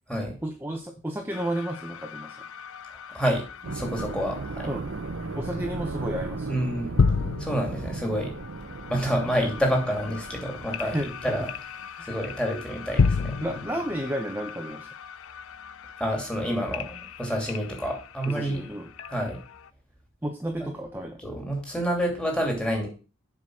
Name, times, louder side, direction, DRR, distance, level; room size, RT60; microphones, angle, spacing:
voice 1, 0.4-2.4 4.7-4.8 5.3-6.5 10.8-11.4 12.0-12.2 13.4-14.9 18.3-18.9 20.2-21.2, right 1 dB, 10° right, 3 dB, 0.9 m, -32 dB
sound 1, 1.3-19.7, left 5 dB, 85° left, 0.5 m, -33 dB
voice 2, 3.1-4.7 6.5-7.0 7.4-8.3 8.9-10.9 11.2-11.5 12.0-13.3 16.0-18.6 19.1-19.4 20.6-20.7 21.2-22.9, equal, 5° left, 0 dB, 2.7 m, -28 dB
sound 2, 3.6-11.9, right 3 dB, 75° right, 0.8 m, -36 dB
7.6 x 6.0 x 6.2 m, 0.35 s
head